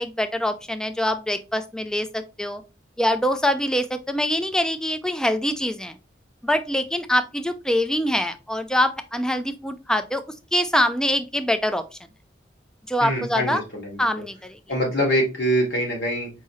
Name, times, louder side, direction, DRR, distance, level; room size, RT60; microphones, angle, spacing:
voice 1, 0.0-2.6 3.0-6.0 6.4-10.2 10.5-11.8 12.9-13.6 14.0-14.6, equal, 5° left, 10 dB, 0.3 m, -24 dB
voice 2, 13.0-14.1 14.7-16.3, equal, 70° left, -1 dB, 1.6 m, -24 dB
4.6 x 3.1 x 2.7 m, 0.28 s
head